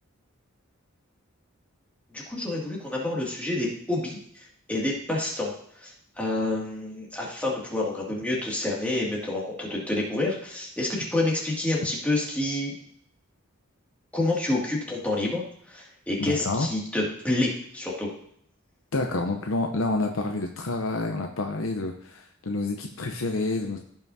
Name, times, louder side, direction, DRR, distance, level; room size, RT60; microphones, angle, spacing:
voice 1, 2.1-12.7 14.1-18.1, left 2 dB, 5° left, -4 dB, 2.3 m, -28 dB
voice 2, 16.2-16.7 18.9-23.8, left 2 dB, 70° left, 3 dB, 0.7 m, -28 dB
15.5 x 5.7 x 2.7 m, 0.68 s
head